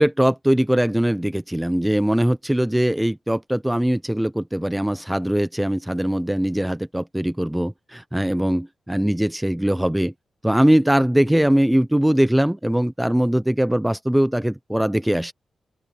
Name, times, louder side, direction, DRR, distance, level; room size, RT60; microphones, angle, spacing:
voice 1, 0.0-10.1 10.4-15.3, right 1 dB, 5° right, 0.4 m, -21 dB
open air
wide cardioid pair, 165°, 0 cm